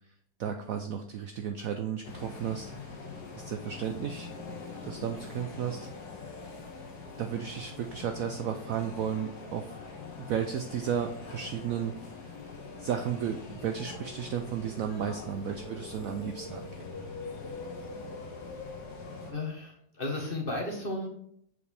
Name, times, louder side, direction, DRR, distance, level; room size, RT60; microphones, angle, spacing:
voice 1, 0.4-2.9 3.4-4.3 4.8-5.9 7.2-9.8 10.3-11.9 12.8-16.9, right 8 dB, 85° right, 6 dB, 0.7 m, -33 dB
sound 1, 2.0-19.3, left 4 dB, 60° left, 1.7 m, -43 dB
voice 2, 19.3-21.1, left 2 dB, 35° left, 1 dB, 1.2 m, -34 dB
7.0 x 5.0 x 3.4 m, 0.69 s
omnidirectional pair, 2.1 m